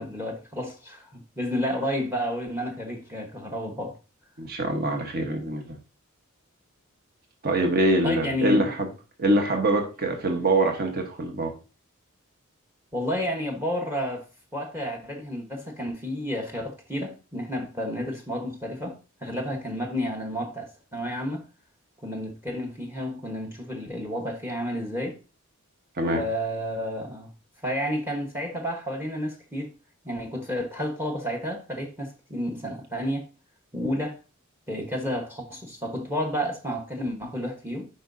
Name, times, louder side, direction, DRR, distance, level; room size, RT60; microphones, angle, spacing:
voice 1, 0.0-4.0 8.0-8.7 12.9-14.2 14.5-21.4 22.0-25.2 26.1-27.3 27.6-29.7 30.0-33.2 33.7-34.2 34.7-37.9, equal, 10° right, 1.0 m, -31 dB
voice 2, 4.4-5.8 7.4-8.9 9.2-11.5 26.0-26.2, right 1 dB, 45° right, 1.1 m, -24 dB
8.7 x 5.3 x 2.6 m
head